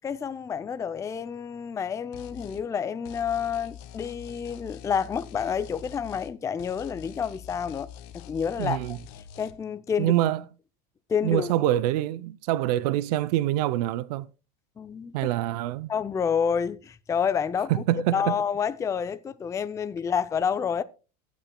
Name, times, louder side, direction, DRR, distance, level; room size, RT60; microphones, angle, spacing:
voice 1, 0.0-9.0 9.4-10.1 11.1-11.5 14.8-15.2 15.9-17.8 18.1-20.8, left 7 dB, 15° left, 0.4 m, -29 dB
sound 1, 2.1-2.6 3.0-6.3 6.6-9.5, left 10 dB, 60° left, 1.2 m, -45 dB
voice 2, 8.6-9.0 10.0-10.4 11.2-14.3 15.1-15.9 17.9-18.4, right 14 dB, 70° right, 0.5 m, -25 dB
22.5 x 8.3 x 2.2 m
supercardioid pair, 115°, 21 cm